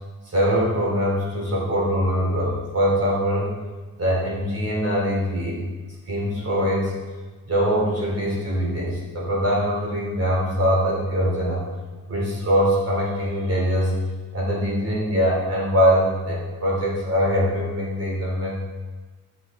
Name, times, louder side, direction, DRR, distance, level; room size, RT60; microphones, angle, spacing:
voice 1, 0.3-3.5 4.0-5.6 6.1-6.9 7.5-11.6 12.1-13.9 14.3-18.6, equal, 45° right, -4 dB, 3.8 m, -22 dB
12.5 x 6.8 x 4.5 m, 1.3 s
cardioid pair, 95°, 35 cm